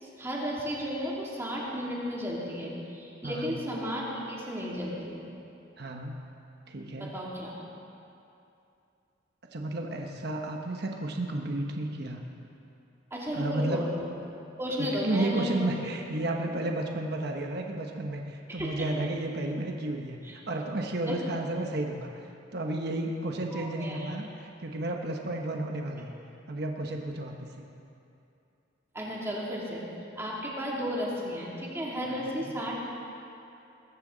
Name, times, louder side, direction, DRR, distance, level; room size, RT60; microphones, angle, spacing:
voice 1, 0.0-5.3 7.0-7.5 13.1-14.1 14.6-15.7 18.5-18.9 20.2-20.4 21.1-21.2 23.5-24.1 28.9-29.8 30.2-32.8, equal, 15° right, -5 dB, 2.7 m, -34 dB
voice 2, 3.2-3.6 5.8-6.2 6.7-7.1 9.5-12.2 13.3-13.9 14.9-22.1 22.5-26.1 26.5-27.5 32.4-32.5, right 2 dB, 55° right, 2 dB, 1.1 m, -32 dB
20.5 x 15.0 x 3.9 m, 2.7 s
head